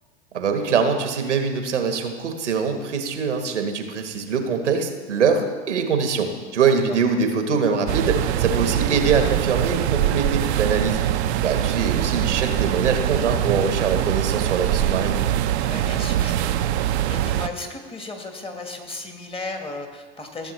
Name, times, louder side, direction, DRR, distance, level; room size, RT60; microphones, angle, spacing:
voice 1, 0.3-11.0 11.4-15.2, right 5 dB, 90° right, 5 dB, 1.3 m, -23 dB
voice 2, 6.6-7.0 15.6-20.5, left 2 dB, 15° left, 4 dB, 1.3 m, -35 dB
sound 1, 7.9-17.5, right 12 dB, 65° right, 0.6 m, -23 dB
14.5 x 7.1 x 3.1 m, 1.5 s
hypercardioid pair, 95°, 35 cm